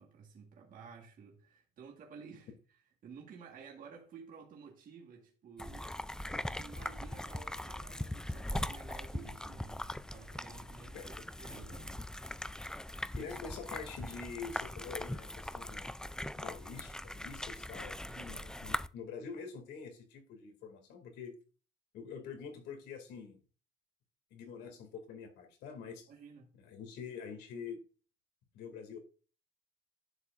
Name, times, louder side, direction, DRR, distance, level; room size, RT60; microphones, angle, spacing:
voice 1, 0.0-2.5 3.0-12.1 18.1-18.4 26.1-26.5, right 5 dB, 55° right, 1.7 m, -53 dB
sound 1, 5.6-18.9, left 1 dB, 5° left, 0.3 m, -41 dB
voice 2, 13.1-15.9 16.4-21.3 21.9-23.4 24.3-26.1 26.5-27.8 28.5-29.0, left 6 dB, 85° left, 2.4 m, -46 dB
11.0 x 6.8 x 2.5 m
cardioid pair, 110°, 17 cm